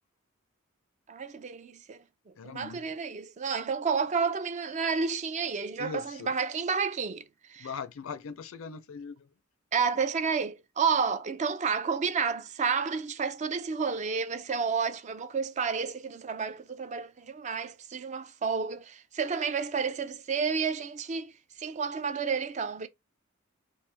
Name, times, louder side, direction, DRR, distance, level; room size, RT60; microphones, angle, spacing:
voice 1, 1.1-2.0 2.4-7.2 7.5-7.7 9.7-21.3 21.6-22.9, right 5 dB, 35° right, 0.4 m, -30 dB
voice 2, 2.4-2.9 5.8-6.3 7.6-9.3, left 5 dB, 75° left, 0.5 m, -40 dB
3.2 x 2.5 x 3.3 m
head